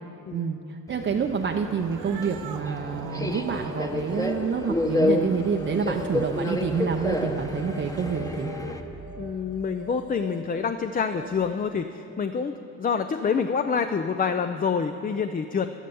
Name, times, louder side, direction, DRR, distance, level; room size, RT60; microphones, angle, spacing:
voice 1, 0.3-8.5, right 6 dB, 40° right, 3 dB, 0.6 m, -28 dB
Subway metro underground, 0.9-8.8, left 2 dB, 10° left, 1.0 m, -30 dB
Cat, 1.7-7.4, right 8 dB, 85° right, 0.8 m, -44 dB
sound 1, 3.4-11.7, equal, 70° right, 1.3 m, -44 dB
voice 2, 9.2-15.7, left 6 dB, 30° left, 8 dB, 0.5 m, -27 dB
11.5 x 11.0 x 7.0 m, 2.8 s
cardioid pair, 90°, 30 cm